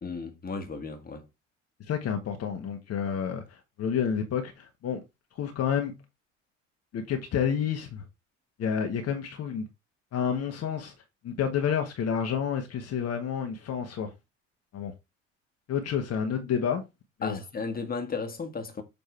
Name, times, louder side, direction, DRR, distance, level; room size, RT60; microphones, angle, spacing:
voice 1, 0.0-1.2 17.2-18.8, left 4 dB, 25° left, 1.7 m, -34 dB
voice 2, 1.9-5.0 5.3-6.0 6.9-8.0 8.6-9.6 10.1-10.9 11.2-14.1 14.7-14.9 15.7-16.8 17.2-17.4, left 7 dB, 40° left, 1.5 m, -29 dB
7.1 x 5.1 x 3.3 m
figure-of-eight pair, 60°, 38 cm